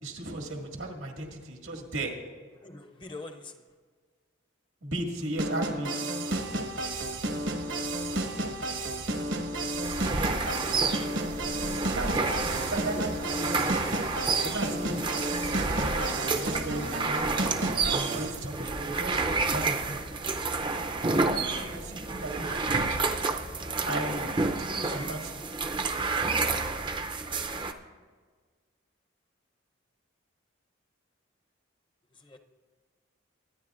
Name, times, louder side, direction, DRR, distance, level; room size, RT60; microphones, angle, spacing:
voice 1, 0.0-2.1 4.8-6.0 11.8-13.8 14.4-15.0 15.6-17.2 17.9-20.0 21.4-23.0 23.9-25.4, right 1 dB, 85° right, 1 dB, 2.0 m, -36 dB
voice 2, 2.6-3.6 21.9-22.0 32.1-32.4, left 3 dB, 25° left, 5 dB, 0.6 m, -44 dB
sound 1, 5.4-18.3, right 1 dB, 70° right, 1.2 m, -32 dB
sound 2, 6.3-24.7, equal, 75° left, 1.2 m, -49 dB
sound 3, 9.8-27.7, right 3 dB, 25° right, 0.5 m, -30 dB
23.5 x 10.0 x 2.5 m, 1.5 s
head